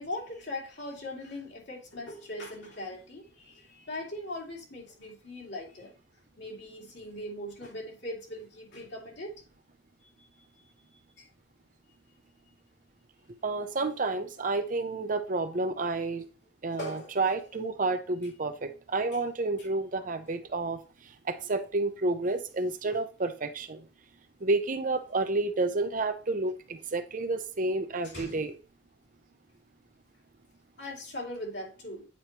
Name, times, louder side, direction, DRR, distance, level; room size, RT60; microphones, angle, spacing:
voice 1, 0.0-5.9 6.4-9.3 10.2-10.3 11.2-11.3 16.7-17.2 19.1-19.2 28.0-28.4 30.8-32.1, left 1 dB, 70° left, 2.4 m, -40 dB
voice 2, 13.4-16.2 16.6-20.8 21.3-23.8 24.4-28.5, right 3 dB, 50° right, 0.7 m, -30 dB
8.4 x 4.6 x 2.9 m
head